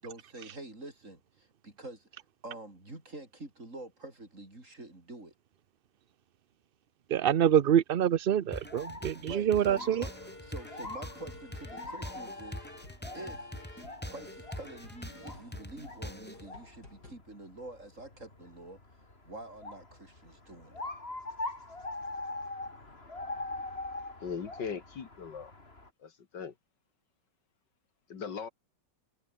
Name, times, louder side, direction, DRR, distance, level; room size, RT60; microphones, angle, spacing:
voice 1, 0.0-5.3 9.2-10.1 10.4-12.7 13.1-13.5 14.1-18.8 19.2-20.8, right 2 dB, 45° right, 6.5 m, -47 dB
voice 2, 7.1-10.0, right 9 dB, 80° right, 0.5 m, -26 dB
sound 1, 8.5-25.9, left 2 dB, 35° left, 4.2 m, -43 dB
sound 2, 8.5-16.5, equal, 5° left, 5.3 m, -44 dB
sound 3, 9.7-17.1, left 2 dB, 65° left, 8.3 m, -51 dB
voice 3, 24.2-25.5 26.0-26.6 28.1-28.5, left 6 dB, 80° left, 2.6 m, -39 dB
omnidirectional pair, 1.9 m